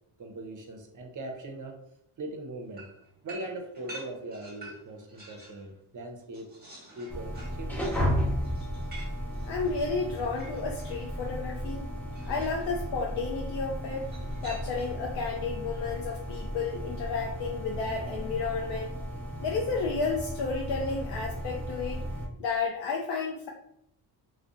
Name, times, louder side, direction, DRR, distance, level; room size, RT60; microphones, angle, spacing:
voice 1, 0.2-1.8 2.2-2.9 3.2-6.6 7.0-8.3, right 1 dB, 40° right, 4 dB, 0.6 m, -40 dB
Milk bottles and cans clatter, 2.8-5.7 6.0-11.1 12.1-12.7 14.0-15.1, right 2 dB, 20° right, 1.0 m, -49 dB
sound 1, 7.1-22.3, equal, 5° left, 0.7 m, -34 dB
voice 2, 9.4-11.9 12.3-14.1 14.4-19.0 19.4-22.0 22.4-23.5, left 4 dB, 60° left, 0 dB, 0.5 m, -32 dB
2.5 x 2.2 x 2.4 m, 0.76 s
cardioid pair, 70°, 48 cm